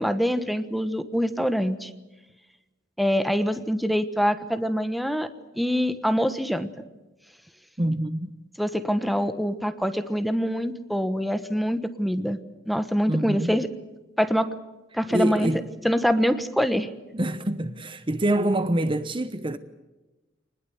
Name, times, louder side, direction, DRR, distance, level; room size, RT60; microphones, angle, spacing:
voice 1, 0.0-1.9 3.0-5.3 5.6-6.7 8.6-12.4 12.7-13.7 14.2-14.5 14.9-15.5 15.8-16.9, equal, ahead, 1.2 m, -24 dB
voice 2, 7.8-8.3 13.1-13.6 15.1-15.6 17.1-19.6, right 1 dB, 25° right, 0.9 m, -26 dB
25.0 x 20.0 x 7.9 m
head